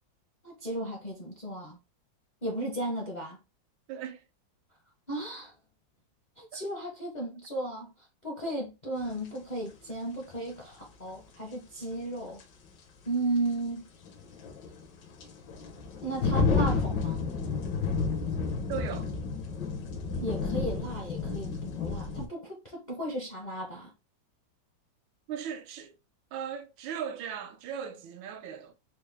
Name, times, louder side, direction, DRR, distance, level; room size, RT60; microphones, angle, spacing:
voice 1, 0.4-1.8 2.4-3.4 5.1-5.5 6.4-7.9 8.2-12.4 13.1-13.9 16.0-17.2 20.2-23.9, right 1 dB, 40° left, 0.6 m, -35 dB
voice 2, 3.9-4.2 6.5-6.6 18.7-19.1 25.3-26.0 26.3-28.7, right 8 dB, 85° right, 1.4 m, -38 dB
sound 1, 9.3-9.4 11.8-11.9 12.4-12.5 14.0-22.3, left 4 dB, 70° left, 1.4 m, -31 dB
4.4 x 2.0 x 3.3 m
omnidirectional pair, 2.1 m